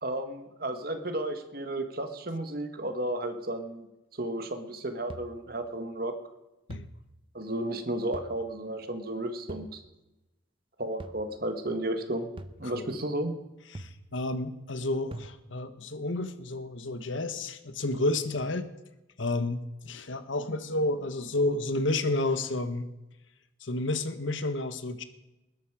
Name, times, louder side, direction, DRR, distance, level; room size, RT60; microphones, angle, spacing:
voice 1, 0.0-3.9 4.1-6.1 7.3-9.8 10.8-12.3 12.6-13.4, right 1 dB, 50° right, 7 dB, 1.7 m, -33 dB
sound 1, 5.1-5.5 6.7-7.1 8.1-8.5 9.5-9.9 11.0-11.4 12.4-12.7 13.7-14.2 15.1-15.3, right 1 dB, 25° right, 0.8 m, -44 dB
voice 2, 13.7-18.7 19.2-22.9 23.6-25.0, left 2 dB, 80° left, 10 dB, 1.3 m, -31 dB
20.5 x 11.5 x 5.0 m, 0.98 s
head